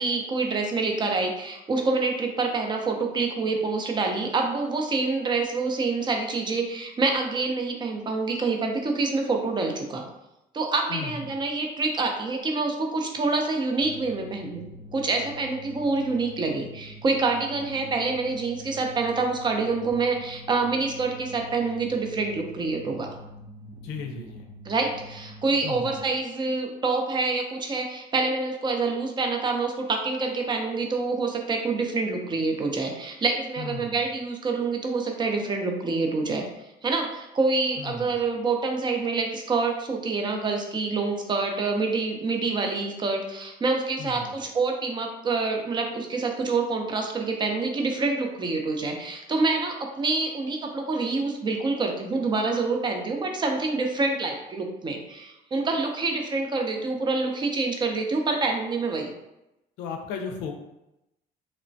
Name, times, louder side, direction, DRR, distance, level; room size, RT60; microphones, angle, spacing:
voice 1, 0.0-10.0 10.5-14.6 14.9-23.1 24.7-36.5 36.8-59.1, right 3 dB, 25° right, 3 dB, 0.5 m, -27 dB
voice 2, 10.9-11.2 23.8-24.5 25.6-26.0 33.6-34.0 37.8-38.1 44.0-44.3 59.8-60.5, left 5 dB, 85° left, 4 dB, 0.5 m, -35 dB
sound 1, 13.8-26.0, equal, 60° right, 0.7 m, -45 dB
3.0 x 2.1 x 2.6 m, 0.90 s
cardioid pair, 110°, 17 cm